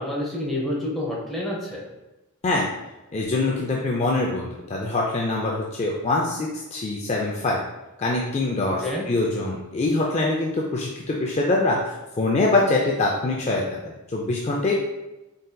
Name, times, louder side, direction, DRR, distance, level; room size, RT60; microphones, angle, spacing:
voice 1, 0.0-1.9 8.8-9.0, left 1 dB, ahead, -5 dB, 0.7 m, -28 dB
voice 2, 3.1-7.6 8.0-11.8 12.2-14.8, left 2 dB, 30° left, -2 dB, 0.3 m, -24 dB
Marimba xylophone, 3.3-5.4, right 6 dB, 60° right, 0.7 m, -48 dB
4.0 x 3.7 x 2.2 m, 1.0 s
head